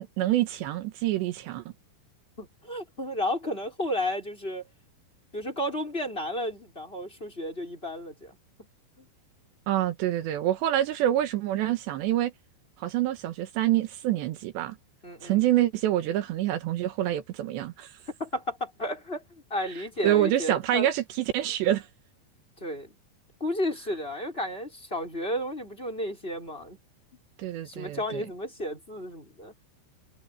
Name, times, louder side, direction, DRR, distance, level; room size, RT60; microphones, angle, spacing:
voice 1, 0.0-1.6 9.7-12.3 12.8-14.8 15.2-17.9 20.0-21.9 27.4-28.2, right 13 dB, 80° right, 3.4 m, -26 dB
voice 2, 2.4-4.7 5.3-8.4 9.0-9.1 15.0-15.4 18.1-20.9 22.6-23.0 23.4-26.8 27.6-29.5, left 1 dB, 10° left, 5.9 m, -33 dB
omnidirectional pair, 5.2 m